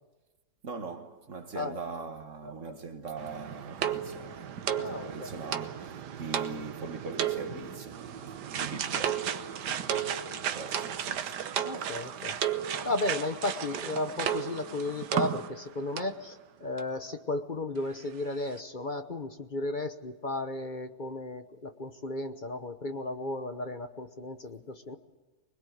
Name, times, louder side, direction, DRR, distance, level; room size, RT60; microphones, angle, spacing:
voice 1, 0.6-9.3 9.6-11.4, right 4 dB, 50° right, 1.8 m, -42 dB
voice 2, 2.4-2.8 4.8-5.3 11.6-12.4 12.8-25.0, left 2 dB, 35° left, 1.0 m, -34 dB
sound 1, 3.2-15.7 16.0-16.2 16.8-16.9 17.1-17.2, right 9 dB, 80° right, 1.6 m, -34 dB
22.5 x 21.0 x 9.4 m
omnidirectional pair, 1.8 m